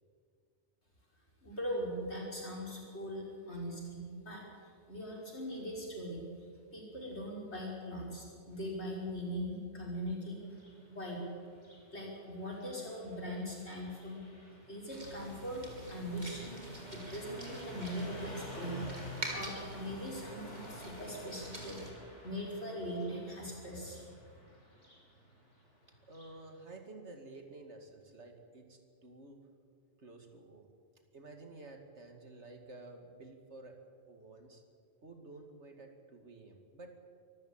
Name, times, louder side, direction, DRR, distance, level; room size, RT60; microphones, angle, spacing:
voice 1, 1.4-4.4 4.9-6.2 6.7-10.4 10.9-11.2 11.9-14.2 14.7-15.6 15.9-16.6 16.9-18.8 19.3-21.8 22.2-24.0, equal, 65° left, -3 dB, 5.9 m, -40 dB
Car passing by, 10.4-26.4, left 1 dB, 85° left, 6.0 m, -51 dB
sound 1, 14.9-21.9, right 1 dB, 40° right, 3.4 m, -46 dB
voice 2, 26.1-29.4 30.0-30.7 31.1-33.8 34.1-34.6 35.0-36.9, right 2 dB, 70° right, 5 dB, 2.6 m, -52 dB
24.0 x 14.5 x 8.9 m, 2.2 s
omnidirectional pair, 1.2 m